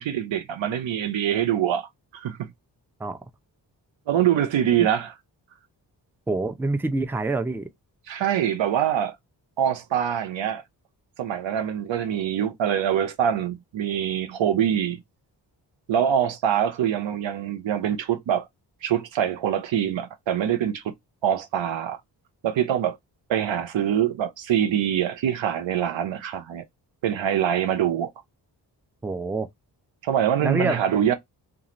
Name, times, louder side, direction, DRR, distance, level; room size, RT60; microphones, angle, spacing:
voice 1, 0.0-2.5 4.1-5.1 8.1-9.2 9.6-10.6 11.2-15.0 15.9-18.5 18.8-20.9 21.2-22.0 22.4-23.0 23.3-26.6 27.0-28.1 30.0-31.1, right 10 dB, 75° right, 0.8 m, -24 dB
voice 2, 6.3-7.7 29.0-29.5 30.4-30.9, right 2 dB, 5° right, 0.5 m, -26 dB
2.5 x 2.4 x 3.0 m
cardioid pair, 50°, 46 cm